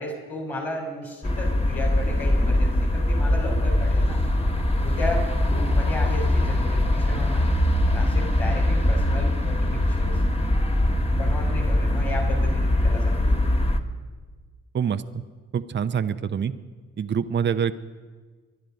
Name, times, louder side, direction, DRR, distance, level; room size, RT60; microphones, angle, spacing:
voice 1, 0.0-4.2 4.8-7.6 7.9-10.2 11.2-13.5, left 1 dB, 85° left, -4 dB, 4.1 m, -34 dB
sound 1, 1.2-13.8, left 1 dB, 20° left, 1.5 m, -22 dB
voice 2, 15.5-16.5 17.0-17.7, right 7 dB, 40° right, 11 dB, 0.8 m, -25 dB
24.5 x 10.5 x 5.3 m, 1.5 s
hypercardioid pair, 50°, 29 cm